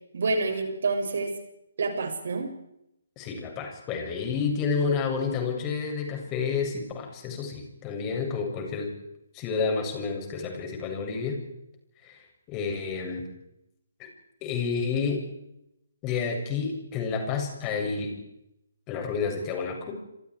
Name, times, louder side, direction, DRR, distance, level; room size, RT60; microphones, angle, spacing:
voice 1, 0.1-1.4 1.8-2.6, right 3 dB, 60° right, 4 dB, 7.2 m, -28 dB
voice 2, 3.2-8.9 9.3-11.4 12.0-13.3 14.0-14.1 14.4-15.3 16.0-18.2 18.9-20.0, left 5 dB, 25° left, 2 dB, 7.9 m, -30 dB
29.0 x 26.5 x 4.9 m, 0.83 s
figure-of-eight pair, 140°, 0 cm